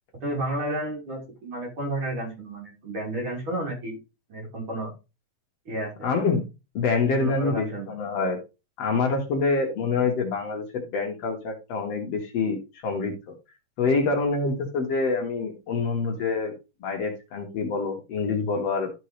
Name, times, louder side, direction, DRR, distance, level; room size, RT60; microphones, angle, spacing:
voice 1, 0.2-4.0 4.3-4.9 5.7-6.1 7.2-7.9, right 1 dB, 40° right, -2 dB, 4.1 m, -31 dB
voice 2, 6.0-6.4 6.7-8.4 8.8-13.1 13.8-16.5 16.8-18.9, left 4 dB, 60° left, 2 dB, 2.2 m, -26 dB
12.5 x 4.6 x 3.1 m, 0.27 s
omnidirectional pair, 3.5 m